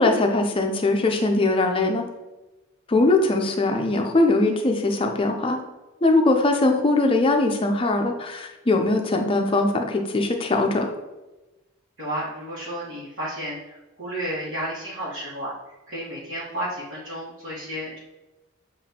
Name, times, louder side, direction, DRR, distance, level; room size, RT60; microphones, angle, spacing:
voice 1, 0.0-2.0 2.9-5.6 6.0-10.9, left 2 dB, 25° left, 3 dB, 0.5 m, -21 dB
voice 2, 12.0-15.5 15.9-18.0, right 1 dB, 65° right, -9 dB, 1.1 m, -32 dB
7.0 x 2.5 x 2.8 m, 1.1 s
head